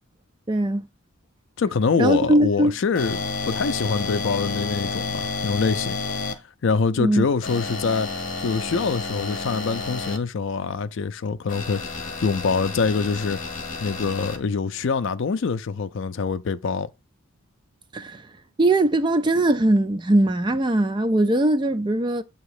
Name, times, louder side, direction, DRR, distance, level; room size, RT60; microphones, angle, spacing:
voice 1, 0.5-0.8 2.0-2.7 7.0-7.3 17.9-18.2 18.6-22.2, right 1 dB, 20° right, 0.4 m, -20 dB
voice 2, 1.6-6.0 6.6-8.1 8.4-16.9, left 5 dB, 60° left, 0.4 m, -25 dB
sound 1, 2.9-6.3 7.4-10.2 11.5-14.4, left 3 dB, 40° left, 1.1 m, -30 dB
8.0 x 2.9 x 4.8 m
head